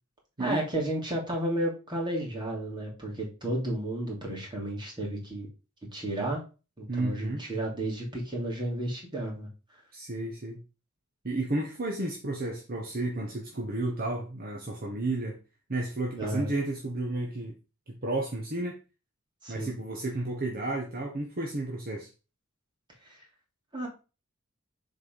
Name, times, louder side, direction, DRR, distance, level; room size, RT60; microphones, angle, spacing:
voice 1, 0.4-5.5 5.9-6.4 6.8-9.5 16.2-16.5 19.4-19.7 23.0-23.2 23.7-23.9, right 1 dB, 20° right, -1 dB, 2.9 m, -32 dB
voice 2, 6.9-7.4 9.9-10.6 11.2-15.4 15.7-17.6 17.9-18.8 19.5-22.1, right 2 dB, 45° right, 1 dB, 1.2 m, -32 dB
7.0 x 4.3 x 5.3 m, 0.32 s
head